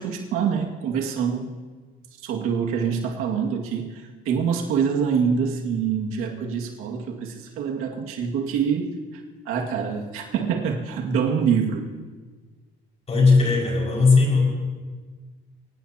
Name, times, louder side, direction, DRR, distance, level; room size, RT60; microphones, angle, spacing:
voice 1, 0.0-1.5 2.2-11.9, right 6 dB, 90° right, 1 dB, 2.1 m, -25 dB
voice 2, 13.1-14.4, left 4 dB, 30° left, -2 dB, 5.5 m, -17 dB
24.0 x 18.5 x 2.9 m, 1.4 s
cardioid pair, 140°, 21 cm